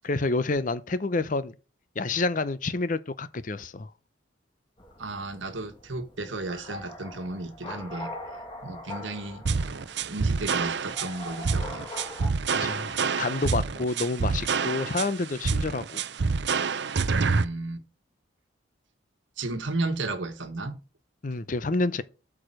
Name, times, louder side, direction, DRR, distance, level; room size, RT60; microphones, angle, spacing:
voice 1, 0.0-1.5 2.0-3.9 12.5-16.0 21.2-22.0, left 3 dB, 40° left, 0.6 m, -28 dB
sound 1, 4.8-12.3, left 1 dB, 25° left, 2.1 m, -42 dB
voice 2, 5.0-8.1 8.6-9.4 10.0-11.8 17.1-17.8 19.4-20.8, right 2 dB, 75° right, 1.5 m, -34 dB
sound 2, 9.4-17.4, right 4 dB, 60° right, 0.6 m, -27 dB
8.6 x 4.9 x 6.2 m
head